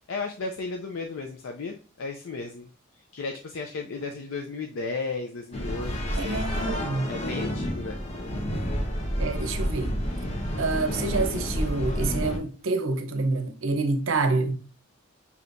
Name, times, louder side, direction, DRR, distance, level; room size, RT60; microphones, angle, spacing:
voice 1, 0.1-2.7 3.1-6.4 7.1-8.0, left 4 dB, 80° left, 0.5 m, -34 dB
sound 1, 5.5-12.4, equal, 35° left, 0.9 m, -29 dB
voice 2, 6.2-7.1 9.2-9.9 10.6-14.6, right 3 dB, 90° right, 0.6 m, -27 dB
6.1 x 2.8 x 2.5 m
head